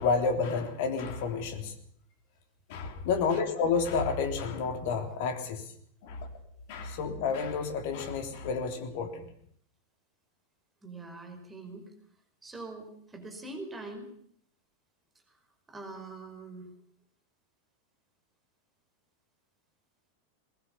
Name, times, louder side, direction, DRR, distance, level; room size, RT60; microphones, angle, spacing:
voice 1, 0.0-1.7 2.7-5.6 6.0-6.3 6.7-9.3, left 5 dB, 50° left, 6 dB, 3.5 m, -30 dB
voice 2, 3.1-3.4 6.8-6.9 10.8-11.9 12.4-14.1 15.3-15.4 15.7-16.7, right 2 dB, 15° right, 4 dB, 5.2 m, -43 dB
20.5 x 20.5 x 7.1 m, 0.65 s
figure-of-eight pair, 90°, 0 cm